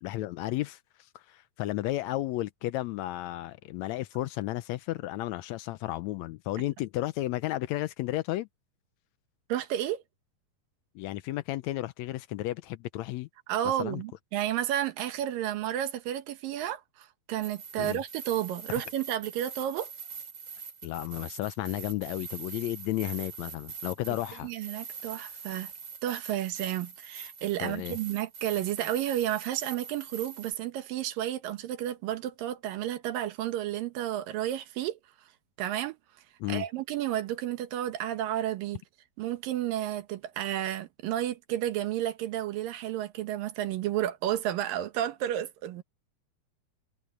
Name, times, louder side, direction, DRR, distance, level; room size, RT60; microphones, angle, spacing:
voice 1, 0.0-8.5 10.9-13.3 13.8-14.0 17.8-18.0 20.8-24.5 27.6-28.0 36.4-36.6, left 16 dB, 90° left, 1.5 m, -33 dB
voice 2, 9.5-10.0 13.5-19.9 24.4-25.7 26.0-35.0 35.6-36.0 36.5-38.8 39.2-45.8, right 12 dB, 80° right, 2.9 m, -32 dB
sound 1, 17.4-30.5, right 6 dB, 35° right, 4.8 m, -43 dB
omnidirectional pair, 3.9 m